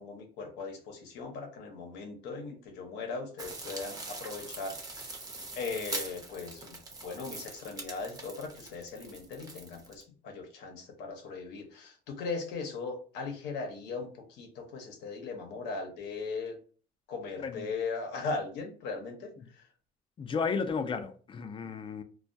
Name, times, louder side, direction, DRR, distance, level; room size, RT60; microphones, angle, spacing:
voice 1, 0.0-5.1 5.5-16.5 17.1-19.6, left 4 dB, 90° left, 0.8 m, -39 dB
sound 1, 3.4-10.0, right 3 dB, 20° right, 0.6 m, -42 dB
voice 2, 17.4-17.7 20.2-22.0, left 5 dB, 30° left, 0.4 m, -33 dB
2.3 x 2.2 x 2.5 m
cardioid pair, 110°, 17 cm